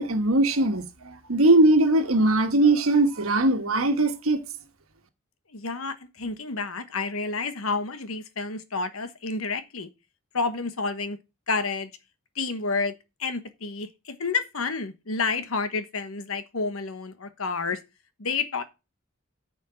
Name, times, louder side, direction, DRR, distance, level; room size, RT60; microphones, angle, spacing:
voice 1, 0.0-4.4, right 2 dB, 90° right, 1.4 m, -20 dB
voice 2, 5.5-9.9 10.3-11.2 11.5-11.9 12.4-12.9 13.2-17.8 18.2-18.6, left 4 dB, 85° left, 1.2 m, -29 dB
9.8 x 5.2 x 5.1 m
head